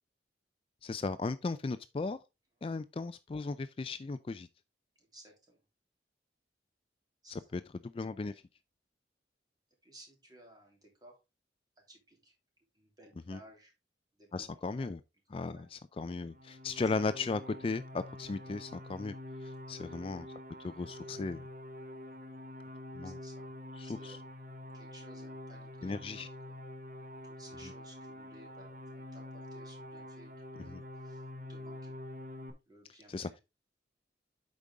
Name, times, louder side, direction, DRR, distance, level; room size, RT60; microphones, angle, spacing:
voice 1, 0.8-2.2 2.6-4.5 7.3-8.3 13.3-13.4 14.3-15.0 15.3-19.1 19.4-20.3 20.6-21.4 22.9-23.2 23.8-24.2 25.8-26.3 30.7-30.8 33.1-33.3, left 3 dB, 30° left, 0.3 m, -36 dB
voice 2, 5.0-5.6 7.2-7.5 9.8-11.2 11.9-12.4 12.7-13.7 14.1-14.9 15.3-15.7 19.7-20.2 23.0-23.5 23.8-24.3 24.7-26.6 27.2-31.9 32.7-33.4, right 1 dB, 25° right, 3.0 m, -58 dB
sound 1, 16.2-32.5, left 1 dB, 55° right, 1.2 m, -46 dB
8.3 x 5.3 x 3.6 m
head